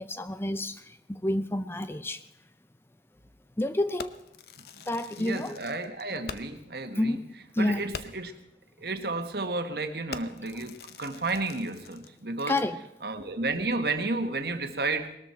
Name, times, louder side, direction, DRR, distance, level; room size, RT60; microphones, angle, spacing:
voice 1, 0.0-2.2 3.6-4.1 4.9-5.6 7.0-7.2 7.5-7.9 12.5-12.8, left 1 dB, 15° left, 11 dB, 0.5 m, -29 dB
Fireworks, 4.0-6.7 7.1-7.2 7.5-7.6 7.9-8.4 9.0-9.2 9.5-9.7 10.1-12.2, left 5 dB, 60° left, 0.8 m, -44 dB
voice 2, 5.2-7.2 7.6-8.3 8.8-12.6 13.0-15.2, right 3 dB, 60° right, 8 dB, 1.4 m, -32 dB
20.0 x 13.5 x 4.4 m, 0.80 s
head